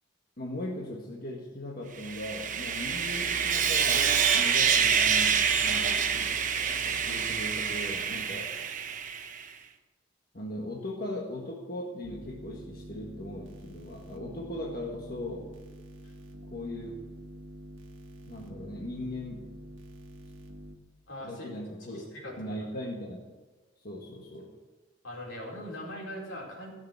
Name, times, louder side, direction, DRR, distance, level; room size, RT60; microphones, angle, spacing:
voice 1, 0.4-6.3 6.8-8.5 10.3-15.5 16.4-17.0 18.3-19.5 21.2-22.0 22.4-23.2 23.8-24.5, left 1 dB, 50° left, -1 dB, 1.6 m, -39 dB
Sawing, 2.0-9.4, right 7 dB, 40° right, 0.9 m, -27 dB
sound 1, 12.0-20.8, right 1 dB, 80° right, 1.5 m, -46 dB
voice 2, 21.1-21.5 21.9-22.5 25.0-26.7, left 1 dB, 80° left, -2 dB, 4.5 m, -41 dB
15.5 x 6.9 x 8.3 m, 1.3 s
head